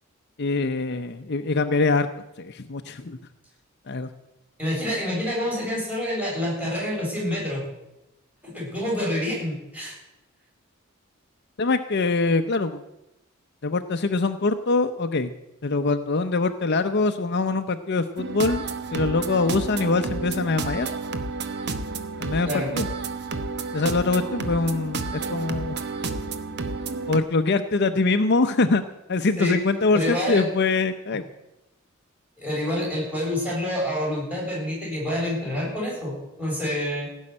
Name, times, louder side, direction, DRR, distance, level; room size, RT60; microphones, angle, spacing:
voice 1, 0.4-2.1 2.4-3.2 3.9-4.1 11.6-12.8 13.6-15.3 15.6-18.6 18.9-20.9 22.2-22.9 23.7-25.8 27.1-28.8 29.1-31.2, left 3 dB, 55° left, 9 dB, 0.7 m, -23 dB
voice 2, 4.6-7.6 8.5-9.9 22.5-22.7 29.4-29.6 29.9-30.4 32.4-36.1 36.4-37.1, left 1 dB, 5° right, -4 dB, 7.4 m, -27 dB
sound 1, 18.2-27.2, right 3 dB, 55° right, 1.1 m, -31 dB
16.5 x 6.4 x 9.7 m, 0.93 s
head